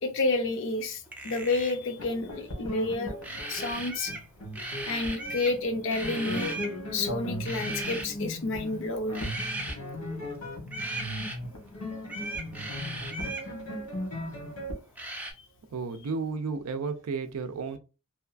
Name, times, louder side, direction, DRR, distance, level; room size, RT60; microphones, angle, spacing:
voice 1, 0.0-3.1 3.4-4.1 4.9-6.6 6.9-9.3, left 3 dB, 55° left, 0.5 m, -30 dB
sound 1, 1.1-1.8 3.2-4.3 4.5-5.6 5.9-6.7 7.4-8.1 9.1-9.8 10.7-11.4 12.1-13.5 15.0-15.3, right 2 dB, 5° right, 0.3 m, -37 dB
sound 2, 2.0-14.7, left 1 dB, 80° left, 1.0 m, -37 dB
voice 2, 15.7-17.8, right 4 dB, 75° right, 0.4 m, -33 dB
2.8 x 2.3 x 2.4 m
head